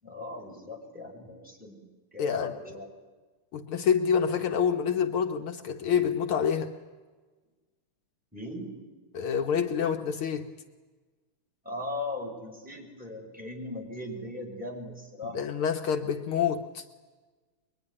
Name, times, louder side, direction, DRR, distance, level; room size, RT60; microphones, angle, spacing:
voice 1, 0.0-2.9 8.3-8.7 11.6-15.4, left 2 dB, 5° right, 5.5 m, -38 dB
voice 2, 2.2-2.5 3.5-6.7 9.1-10.6 15.3-16.8, left 7 dB, 75° left, 1.9 m, -27 dB
24.0 x 22.5 x 9.8 m
omnidirectional pair, 2.4 m